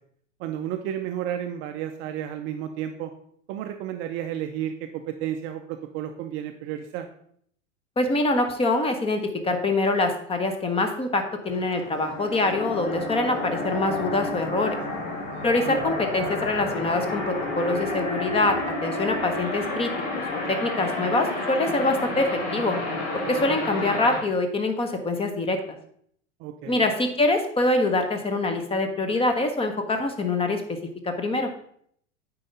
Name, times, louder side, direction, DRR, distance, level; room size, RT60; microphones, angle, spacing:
voice 1, 0.4-3.1 3.5-7.1 15.7-15.8 26.4-26.8, right 10 dB, 30° right, 6 dB, 0.5 m, -32 dB
voice 2, 8.0-14.8 15.4-22.8 23.3-25.6 26.6-30.8 31.0-31.5, left 2 dB, 15° left, 6 dB, 0.8 m, -25 dB
sound 1, 11.4-24.2, left 2 dB, 55° left, 2.1 m, -30 dB
8.7 x 4.6 x 3.8 m, 0.66 s
figure-of-eight pair, 85°, 38 cm